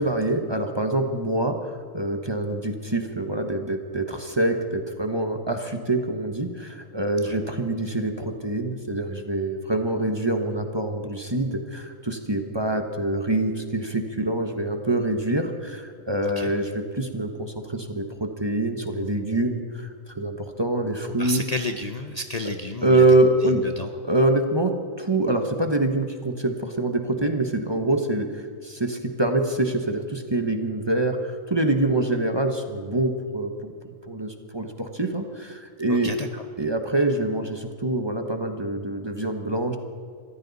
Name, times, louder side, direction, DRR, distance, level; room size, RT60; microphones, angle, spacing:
voice 1, 0.0-21.4 22.8-23.6 24.0-36.1 36.6-39.8, right 2 dB, 20° right, 5 dB, 1.1 m, -25 dB
voice 2, 21.2-23.0 23.5-23.9 35.9-36.4, left 2 dB, 35° left, 5 dB, 0.8 m, -31 dB
23.0 x 15.0 x 4.1 m, 2.2 s
omnidirectional pair, 1.3 m